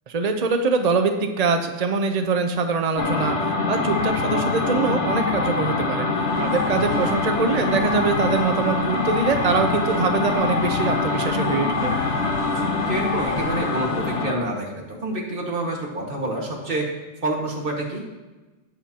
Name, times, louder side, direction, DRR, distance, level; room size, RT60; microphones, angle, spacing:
voice 1, 0.1-3.4 3.7-6.1 6.4-11.9, right 4 dB, 75° right, 6 dB, 0.3 m, -23 dB
sound 1, 3.0-14.4, left 3 dB, 50° left, 1.1 m, -24 dB
sound 2, 6.3-14.2, left 1 dB, 90° left, 3.0 m, -40 dB
voice 2, 11.8-16.9 17.2-18.0, right 1 dB, 30° right, -1 dB, 1.9 m, -28 dB
18.5 x 6.9 x 2.9 m, 1.2 s
omnidirectional pair, 1.8 m